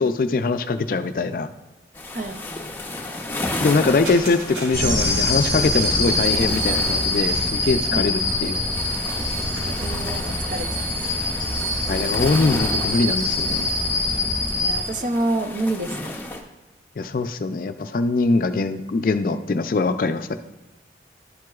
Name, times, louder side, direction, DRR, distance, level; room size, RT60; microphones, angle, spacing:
voice 1, 0.0-1.5 3.6-8.5 11.9-13.7 17.0-20.4, left 3 dB, 50° left, 9 dB, 0.4 m, -22 dB
sound 1, 1.9-16.4, left 2 dB, 10° left, 0.6 m, -34 dB
sound 2, 2.2-8.1 8.3-10.1, right 1 dB, 85° right, 2.7 m, -40 dB
sound 3, 4.7-14.8, left 2 dB, 30° right, 3.0 m, -24 dB
voice 2, 7.9-8.3 9.6-10.9 14.6-16.2, right 2 dB, 45° right, 7 dB, 0.6 m, -28 dB
12.0 x 7.6 x 2.3 m, 1.1 s
head